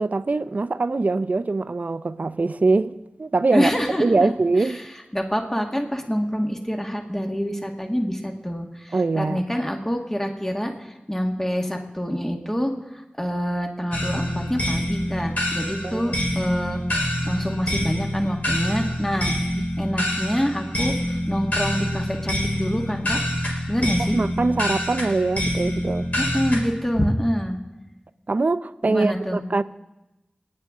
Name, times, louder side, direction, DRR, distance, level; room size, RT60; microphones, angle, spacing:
voice 1, 0.0-3.7 4.0-4.8 8.9-9.4 15.8-16.1 19.5-19.7 24.0-26.1 28.3-29.6, right 3 dB, 60° right, 0.6 m, -23 dB
voice 2, 3.5-4.3 5.1-10.7 11.1-12.7 13.2-16.8 17.2-19.4 19.8-20.9 21.3-23.2 23.7-24.2 26.2-27.6 28.8-29.4, equal, 15° left, 1.8 m, -26 dB
sound 1, 13.9-26.6, equal, 55° left, 4.2 m, -26 dB
28.5 x 9.7 x 3.7 m
wide cardioid pair, 50°, 3 cm